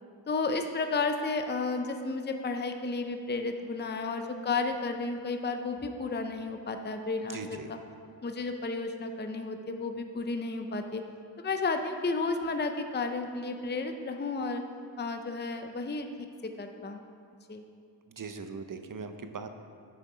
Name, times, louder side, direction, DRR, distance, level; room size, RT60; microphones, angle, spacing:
voice 1, 0.3-7.8 8.2-11.0 11.4-14.6 15.0-16.1 16.4-17.0 17.5-17.6, left 3 dB, 25° left, 6 dB, 0.5 m, -32 dB
voice 2, 7.2-7.7 18.1-19.5, right 4 dB, 45° right, 8 dB, 0.7 m, -40 dB
9.8 x 6.5 x 4.9 m, 2.4 s
wide cardioid pair, 65°, 45 cm